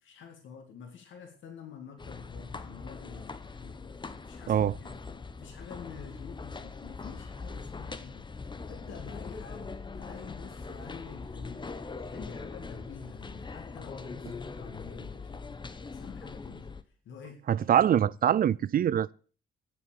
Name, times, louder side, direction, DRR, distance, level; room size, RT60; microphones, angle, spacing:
voice 1, 0.0-3.8 4.3-5.1 5.4-8.3 8.7-11.7 12.1-15.6 15.9-18.0, left 6 dB, 75° left, 2.2 m, -48 dB
sound 1, 2.0-16.8, left 4 dB, 25° left, 0.9 m, -42 dB
voice 2, 17.5-19.1, right 10 dB, 45° right, 0.4 m, -24 dB
10.5 x 6.2 x 7.4 m
cardioid pair, 90°, 20 cm